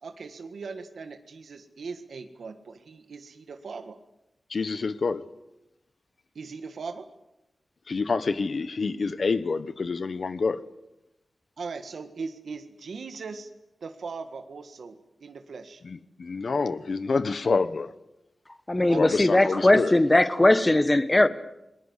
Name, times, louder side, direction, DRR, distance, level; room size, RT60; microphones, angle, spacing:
voice 1, 0.0-4.0 6.3-7.1 11.6-13.5 13.8-15.8 18.9-20.0, right 4 dB, 85° right, 1.7 m, -39 dB
voice 2, 4.5-5.2 7.9-10.6 15.8-17.9 19.0-19.9, left 4 dB, 60° left, 1.1 m, -27 dB
voice 3, 18.7-21.3, left 1 dB, 20° left, 1.4 m, -19 dB
29.5 x 21.0 x 8.2 m
wide cardioid pair, 120°, 0 cm